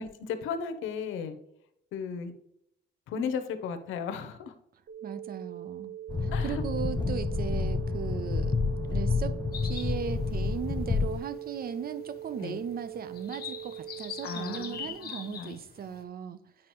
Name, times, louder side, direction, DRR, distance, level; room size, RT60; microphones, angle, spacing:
voice 1, 0.0-1.4 1.9-2.3 3.1-4.5 6.3-6.6 12.4-12.6 14.2-15.6, left 6 dB, 90° left, 9 dB, 0.8 m, -35 dB
sound 1, 4.9-14.9, right 11 dB, 80° right, 0.9 m, -42 dB
voice 2, 5.0-5.9 6.2-8.5 8.9-9.4 9.6-16.4, right 7 dB, 50° right, 13 dB, 0.6 m, -37 dB
sound 2, 6.1-11.2, left 4 dB, 20° left, 0.5 m, -29 dB
sound 3, 9.5-16.0, left 7 dB, 50° left, 1.0 m, -44 dB
8.6 x 4.8 x 3.0 m, 0.76 s
cardioid pair, 90°, 20 cm